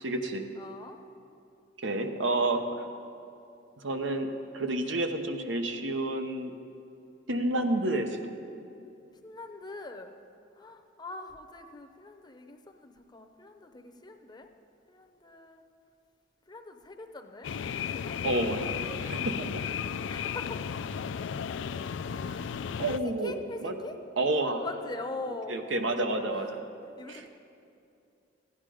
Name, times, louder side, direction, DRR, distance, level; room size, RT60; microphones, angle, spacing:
voice 1, 0.0-0.5 1.8-2.9 3.8-6.5 7.3-8.3 18.2-19.5 22.8-23.3 23.6-23.7 24.2-24.6 25.5-26.5 27.1-27.2, right 2 dB, 85° right, 5 dB, 0.9 m, -29 dB
voice 2, 0.6-1.0 4.6-4.8 9.2-10.1 10.6-14.5 14.9-15.6 16.5-18.2 19.8-20.8 21.5-22.4 22.8-24.0 24.6-25.6 26.3-26.5 26.8-27.3, left 2 dB, 25° left, 5 dB, 0.7 m, -43 dB
sound 1, 17.4-23.0, left 7 dB, 75° left, 0.3 m, -34 dB
15.0 x 9.8 x 5.0 m, 2.6 s
head